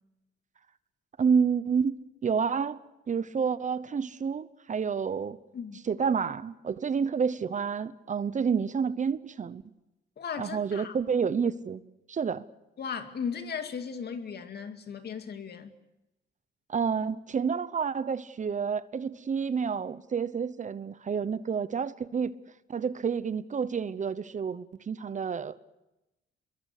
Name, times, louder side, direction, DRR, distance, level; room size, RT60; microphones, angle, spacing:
voice 1, 1.2-2.8 3.1-5.4 5.9-9.6 10.4-11.8 12.1-12.4 16.7-22.4 22.7-25.6, right 6 dB, 40° right, 0.9 m, -29 dB
voice 2, 10.2-11.0 12.8-15.7, left 6 dB, 55° left, 2.4 m, -36 dB
26.5 x 22.0 x 6.7 m
cardioid pair, 90°, 20 cm